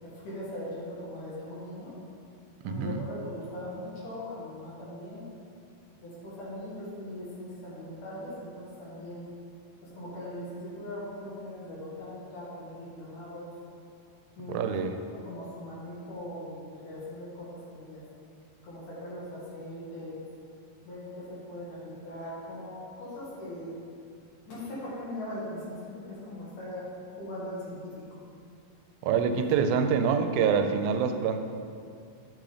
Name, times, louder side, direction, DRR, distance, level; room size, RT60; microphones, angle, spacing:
voice 1, 0.0-1.9 2.6-5.2 6.0-9.2 9.8-13.5 14.4-14.7 15.2-18.0 18.6-20.2 20.8-23.7 24.5-26.9 27.2-27.9, left 1 dB, 65° left, -7 dB, 3.0 m, -40 dB
voice 2, 2.7-3.0 14.5-14.9 29.0-31.4, right 6 dB, 90° right, 7 dB, 2.4 m, -26 dB
9.1 x 3.8 x 4.9 m, 2.3 s
omnidirectional pair, 4.1 m